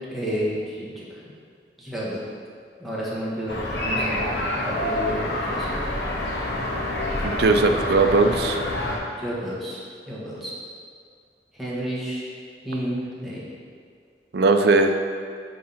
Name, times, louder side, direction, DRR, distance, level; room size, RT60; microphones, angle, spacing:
voice 1, 0.1-1.2 1.8-2.2 2.8-5.8 9.1-10.5 11.5-12.3 12.6-13.4, equal, ahead, -9 dB, 1.6 m, -31 dB
sound 1, 3.5-9.0, left 1 dB, 65° left, 1.4 m, -27 dB
voice 2, 7.2-8.6 14.3-14.9, right 3 dB, 65° right, 6 dB, 0.5 m, -19 dB
9.7 x 3.8 x 4.3 m, 2.2 s
head